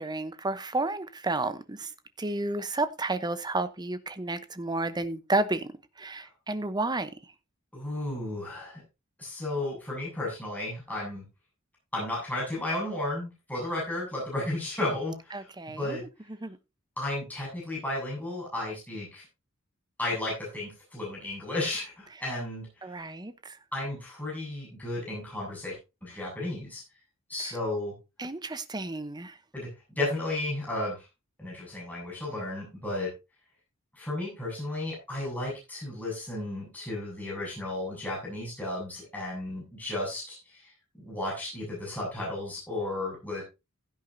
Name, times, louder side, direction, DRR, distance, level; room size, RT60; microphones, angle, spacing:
voice 1, 0.0-1.9 2.2-5.7 6.0-7.1 15.3-16.1 16.4-16.6 22.8-23.6 27.4-27.5 28.2-29.3, right 2 dB, 20° right, 0.9 m, -31 dB
voice 2, 7.7-8.8 9.2-11.2 11.9-15.5 15.8-16.0 17.0-19.2 20.0-22.7 23.7-25.7 26.0-26.8 27.3-27.9 29.5-29.7 30.0-31.0 31.4-33.1 34.0-40.7 41.0-43.4, left 2 dB, 10° left, 7.6 m, -33 dB
16.0 x 9.2 x 2.8 m
head